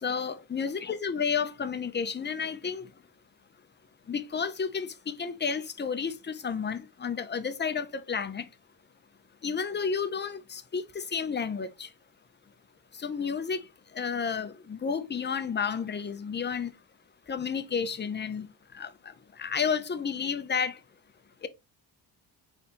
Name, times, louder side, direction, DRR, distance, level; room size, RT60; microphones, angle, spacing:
voice 1, 0.0-2.9 4.1-8.5 9.4-11.9 13.0-13.6 13.9-16.7 17.3-18.5 18.7-20.8 21.4-21.5, left 6 dB, 25° left, 0.6 m, -31 dB
4.2 x 3.4 x 2.9 m
cardioid pair, 80°, 43 cm